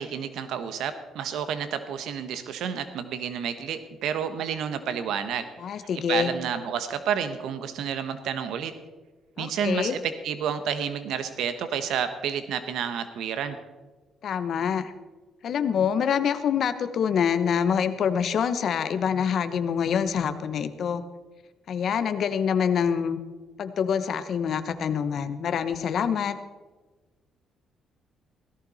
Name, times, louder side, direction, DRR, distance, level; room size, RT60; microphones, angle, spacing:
voice 1, 0.0-5.5 6.1-8.7 9.4-13.6, right 8 dB, 80° right, 10 dB, 1.1 m, -30 dB
voice 2, 5.6-6.3 9.4-10.0 14.2-14.9 15.4-21.0 21.7-23.2 23.6-26.3, left 7 dB, 55° left, 10 dB, 1.1 m, -26 dB
17.0 x 14.5 x 4.3 m, 1.3 s
cardioid pair, 135°, 0 cm